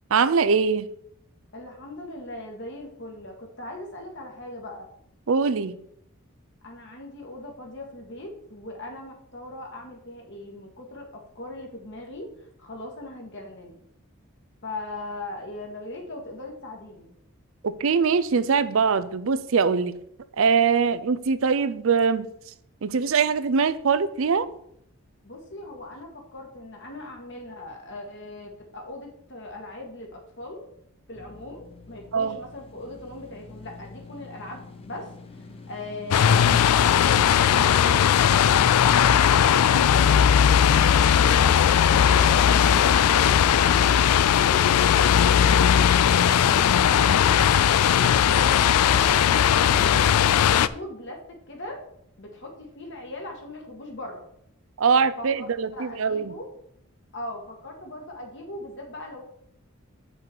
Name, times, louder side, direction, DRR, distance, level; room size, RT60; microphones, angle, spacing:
voice 1, 0.1-0.9 5.3-5.8 17.6-19.9 20.4-22.3 22.8-24.5 32.1-32.4 54.8-56.3, right 5 dB, 65° right, 0.5 m, -22 dB
voice 2, 1.5-4.9 6.6-13.8 14.6-17.1 25.2-30.6 31.1-35.1 35.4-38.0 50.4-51.8 52.2-54.3 55.2-56.5 57.1-59.2, left 1 dB, 55° left, 1.9 m, -39 dB
sound 1, 31.1-41.8, left 3 dB, 25° left, 0.8 m, -45 dB
sound 2, 36.1-50.7, left 8 dB, 90° left, 0.4 m, -18 dB
8.0 x 6.1 x 4.6 m
head